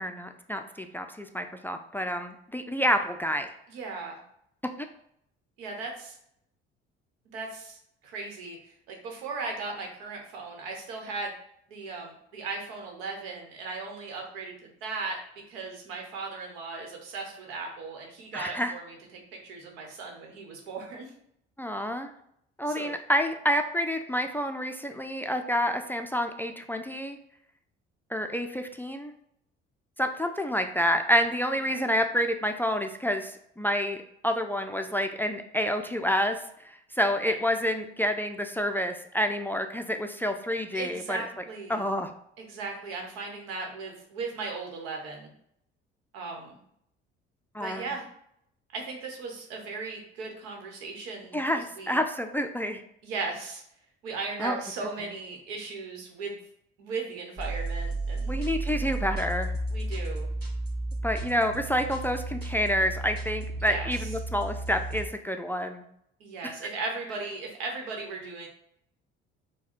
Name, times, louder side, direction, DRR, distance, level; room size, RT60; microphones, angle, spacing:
voice 1, 0.0-3.5 18.3-18.7 21.6-22.1 22.6-27.2 28.1-29.1 30.0-34.0 34.2-36.4 37.0-41.2 41.7-42.1 47.5-47.9 51.3-52.8 54.4-54.6 58.3-59.5 61.0-65.8 66.4-66.5, equal, 5° left, 6 dB, 0.4 m, -28 dB
voice 2, 3.7-4.2 5.6-6.2 7.3-11.3 11.7-15.2 15.5-21.1 22.7-22.9 31.7-31.9 37.2-37.4 40.7-41.8 42.4-45.3 46.1-46.6 47.6-48.1 48.7-51.4 51.7-52.0 53.0-53.6 54.0-56.4 56.8-58.3 59.7-60.3 63.6-64.1 66.2-68.5, right 4 dB, 85° right, 1 dB, 1.0 m, -37 dB
sound 1, 57.4-65.1, right 2 dB, 35° right, 1.7 m, -33 dB
4.6 x 2.2 x 4.4 m, 0.72 s
hypercardioid pair, 60°, 30 cm